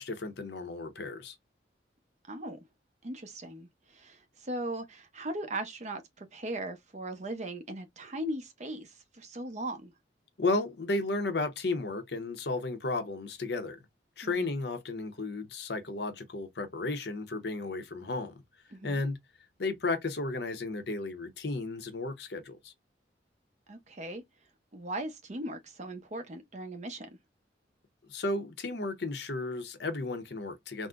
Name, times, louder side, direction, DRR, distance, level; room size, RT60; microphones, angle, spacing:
voice 1, 0.0-1.3 10.4-13.8 14.2-18.3 18.8-19.2 19.6-22.7 28.1-30.9, left 3 dB, 65° left, 0.7 m, -33 dB
voice 2, 2.3-2.6 3.0-9.9 14.2-14.5 18.7-19.0 23.7-24.2 24.7-27.2, right 1 dB, 40° right, 0.7 m, -38 dB
3.6 x 2.1 x 2.4 m
head